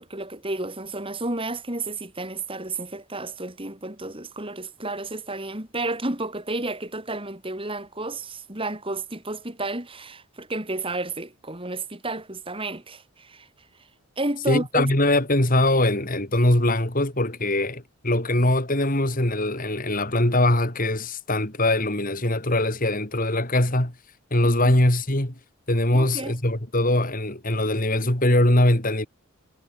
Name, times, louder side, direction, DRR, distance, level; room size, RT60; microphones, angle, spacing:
voice 1, 0.0-13.5 14.2-14.9 24.4-24.7 25.9-26.4, right 2 dB, 25° right, 4.1 m, -31 dB
voice 2, 14.5-23.9 24.3-25.3 25.7-29.1, left 1 dB, 40° left, 3.3 m, -22 dB
head